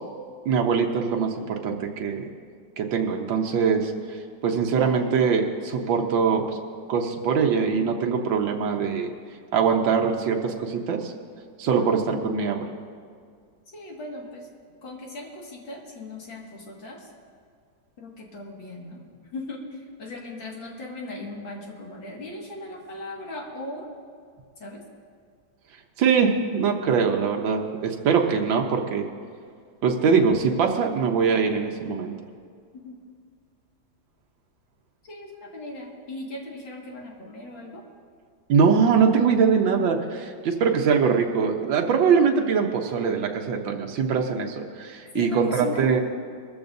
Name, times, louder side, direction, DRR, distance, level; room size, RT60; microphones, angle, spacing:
voice 1, 0.4-2.3 2.8-4.2 4.4-6.6 6.9-9.1 9.5-11.1 11.6-12.7 26.0-29.1 29.8-32.1 38.5-46.0, right 6 dB, 85° right, 2 dB, 1.7 m, -22 dB
voice 2, 13.7-14.5 14.8-17.1 18.0-19.0 19.3-23.9 24.6-24.8 32.7-33.0 35.0-37.8 45.1-45.9, left 2 dB, 85° left, -1 dB, 2.7 m, -38 dB
21.0 x 14.0 x 2.7 m, 2.1 s
omnidirectional pair, 2.0 m